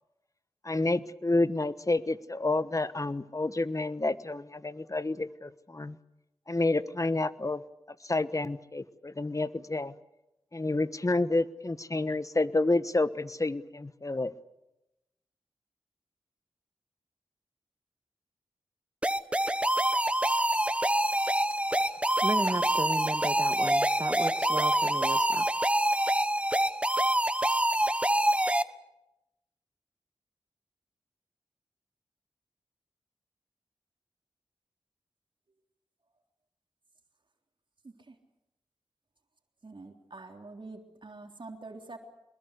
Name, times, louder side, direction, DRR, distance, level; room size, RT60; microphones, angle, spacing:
voice 1, 0.6-6.0 6.5-7.6 7.9-9.9 10.5-14.3, left 2 dB, 35° left, 14 dB, 1.2 m, -29 dB
sound 1, 19.0-28.6, right 1 dB, 10° right, 1.1 m, -26 dB
voice 2, 22.2-25.5 25.8-25.9, right 2 dB, 30° right, 10 dB, 1.8 m, -34 dB
voice 3, 39.6-42.0, right 3 dB, 55° right, 3 dB, 3.6 m, -45 dB
24.5 x 21.5 x 8.2 m, 0.94 s
cardioid pair, 45°, 10 cm